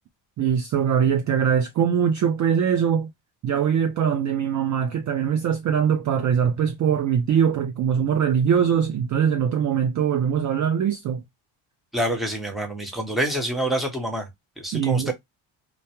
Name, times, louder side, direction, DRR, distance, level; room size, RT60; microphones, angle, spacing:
voice 1, 0.4-3.1 3.4-11.2 14.7-15.1, right 8 dB, 40° right, 0.4 m, -22 dB
voice 2, 11.9-14.3 14.6-15.1, right 1 dB, ahead, 0.7 m, -26 dB
2.2 x 2.0 x 2.8 m
supercardioid pair, 80°, 49 cm